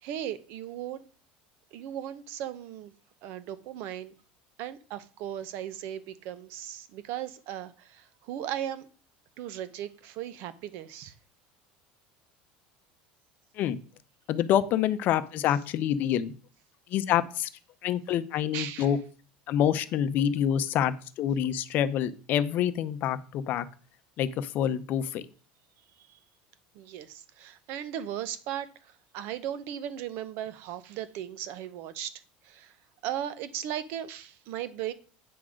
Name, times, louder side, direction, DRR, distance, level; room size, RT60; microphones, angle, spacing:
voice 1, 0.0-1.0 1.7-2.9 3.2-4.1 4.6-8.9 9.4-11.1 18.5-18.9 26.0-26.2 26.7-32.7 33.0-34.9, right 11 dB, 60° right, 0.8 m, -37 dB
voice 2, 14.3-16.3 16.9-17.5 17.8-19.0 19.5-23.7 24.2-25.2, left 10 dB, 50° left, 0.7 m, -27 dB
8.7 x 3.7 x 6.4 m
supercardioid pair, 135°, 4 cm